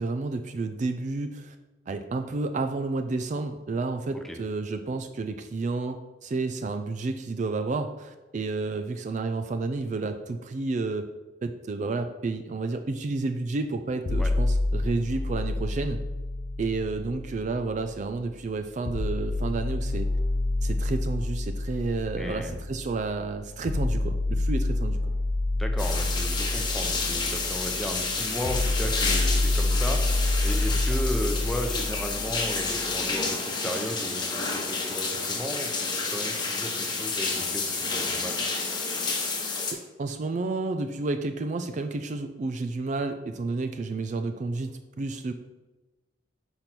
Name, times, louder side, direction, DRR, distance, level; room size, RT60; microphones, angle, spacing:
voice 1, 0.0-1.6 1.9-11.1 11.4-16.0 16.6-20.1 20.6-25.1 30.7-30.9 39.6-45.3, right 3 dB, 45° right, 7 dB, 0.4 m, -31 dB
sound 1, 14.1-18.1 18.9-32.9, left 2 dB, 45° left, 0.5 m, -28 dB
voice 2, 22.2-22.6 25.6-30.0 30.4-38.4, equal, ahead, 3 dB, 0.7 m, -35 dB
sound 2, 25.8-39.7, left 4 dB, 25° left, 1.0 m, -30 dB
5.2 x 4.4 x 6.0 m, 1.1 s
head